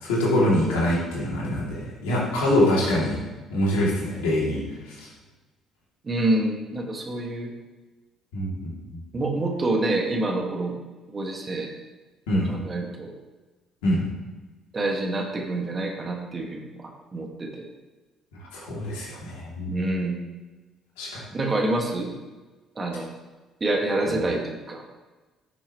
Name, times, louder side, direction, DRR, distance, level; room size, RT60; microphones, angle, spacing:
voice 1, 0.0-3.2 3.5-4.6 8.3-8.7 12.3-12.5 13.8-14.0 18.5-19.8 21.0-21.2 24.1-24.2, left 1 dB, 80° left, -5 dB, 2.9 m, -24 dB
voice 2, 6.0-7.5 9.1-10.8 11.1-11.7 12.5-13.1 14.7-17.6 19.7-20.2 21.3-22.1 22.8-23.1 23.6-24.8, right 2 dB, 35° right, 1 dB, 2.0 m, -27 dB
11.5 x 6.9 x 3.2 m, 1.2 s
hypercardioid pair, 50°, 0 cm